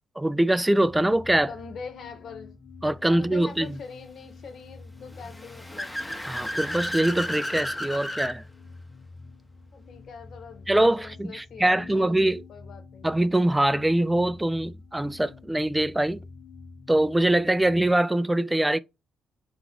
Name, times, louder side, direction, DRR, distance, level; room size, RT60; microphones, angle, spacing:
voice 1, 0.2-1.5 2.8-3.7 6.3-8.4 10.7-12.4 13.0-16.2 16.9-18.8, right 1 dB, 10° right, 0.3 m, -23 dB
sound 1, 0.8-17.9, left 4 dB, 85° left, 1.1 m, -47 dB
voice 2, 1.5-2.6 3.1-5.9 9.7-10.7 11.0-12.2 12.5-13.1, left 5 dB, 60° left, 1.2 m, -43 dB
Car / Accelerating revving vroom, 5.1-8.3, left 1 dB, 10° left, 0.8 m, -32 dB
3.5 x 3.0 x 3.8 m
cardioid pair, 90°, 0 cm